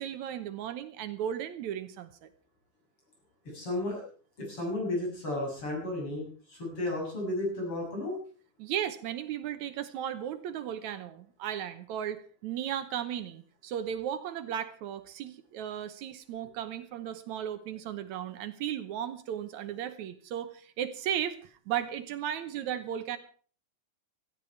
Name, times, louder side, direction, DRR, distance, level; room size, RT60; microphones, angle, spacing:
voice 1, 0.0-2.3 8.6-23.2, right 10 dB, 75° right, 11 dB, 2.3 m, -35 dB
voice 2, 3.4-4.0 4.4-8.2, left 1 dB, 45° left, -1 dB, 8.2 m, -33 dB
17.0 x 14.5 x 4.6 m, 0.42 s
omnidirectional pair, 3.4 m